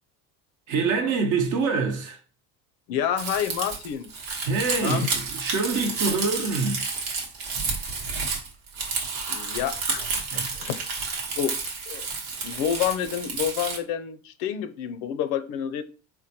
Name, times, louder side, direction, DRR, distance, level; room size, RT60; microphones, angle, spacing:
voice 1, 0.7-2.2 4.4-6.9 10.3-10.5, right 4 dB, 50° right, 0.8 m, -25 dB
voice 2, 2.9-4.1 4.8-5.1 9.3-10.8 11.4-11.5 11.8-12.1 12.4-15.8, left 9 dB, 65° left, 0.5 m, -28 dB
Crumpling crinkling, 3.2-13.8, right 4 dB, 85° right, 1.1 m, -30 dB
3.7 x 2.2 x 2.8 m
supercardioid pair, 100°, 40 cm